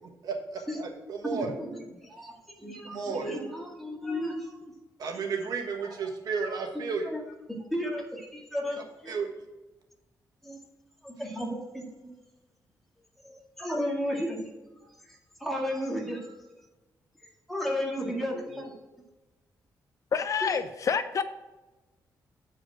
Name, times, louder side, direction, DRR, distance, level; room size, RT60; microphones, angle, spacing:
voice 1, 0.0-1.5 2.9-3.3 5.0-7.1 9.1-9.3, right 5 dB, 65° right, 2 dB, 1.4 m, -33 dB
voice 2, 1.3-4.7 5.9-6.0 6.7-7.2 7.7-9.2 10.4-10.6 11.0-12.1 13.2-14.6 15.0-16.4 17.5-19.0 20.4-20.6, equal, 5° left, -1 dB, 2.0 m, -34 dB
voice 3, 20.1-21.2, left 6 dB, 50° left, 11 dB, 0.5 m, -27 dB
8.8 x 5.0 x 4.9 m, 1.1 s
cardioid pair, 120°, 7 cm